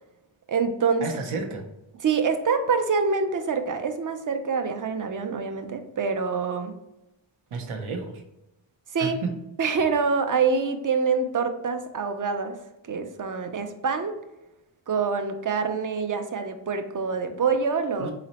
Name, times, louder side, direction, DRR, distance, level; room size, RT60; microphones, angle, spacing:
voice 1, 0.5-1.0 2.0-6.7 8.9-9.2 9.6-12.6 12.9-14.2 14.9-18.1, right 5 dB, 45° right, 7 dB, 0.4 m, -25 dB
voice 2, 1.0-1.6 7.5-8.2 9.0-9.3 18.0-18.1, right 4 dB, 80° right, 5 dB, 0.7 m, -31 dB
4.0 x 2.0 x 4.0 m, 0.92 s
wide cardioid pair, 70°, 49 cm